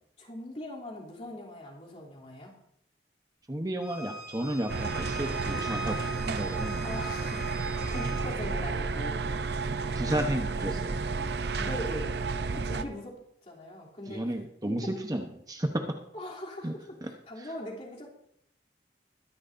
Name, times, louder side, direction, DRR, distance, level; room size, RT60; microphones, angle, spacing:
voice 1, 0.2-2.5 5.5-5.7 6.8-7.4 7.9-9.2 10.6-10.8 11.6-12.2 12.5-14.2 14.6-14.8 16.1-18.1, left 1 dB, 40° left, -4 dB, 3.1 m, -41 dB
voice 2, 3.5-6.0 6.2-6.9 9.9-10.9 12.5-12.7 14.1-15.8 16.6-16.7 17.0-17.1 17.4-17.5, right 1 dB, 20° right, 3 dB, 0.9 m, -33 dB
Bowed string instrument, 3.8-8.3, equal, 5° right, 2.3 m, -42 dB
sound 1, 4.7-12.8, right 4 dB, 70° right, 0.7 m, -31 dB
22.0 x 10.5 x 2.6 m, 0.73 s
head